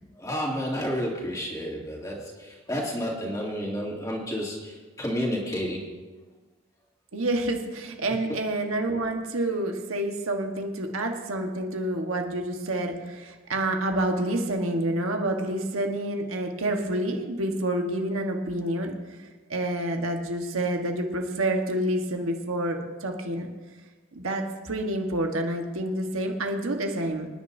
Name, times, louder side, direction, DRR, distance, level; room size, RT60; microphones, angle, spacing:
voice 1, 0.2-5.9, equal, 15° left, -3 dB, 2.6 m, -31 dB
voice 2, 7.1-18.9 19.5-23.5 24.1-27.3, right 1 dB, 85° right, 3 dB, 1.4 m, -28 dB
26.0 x 10.0 x 2.8 m, 1.3 s
head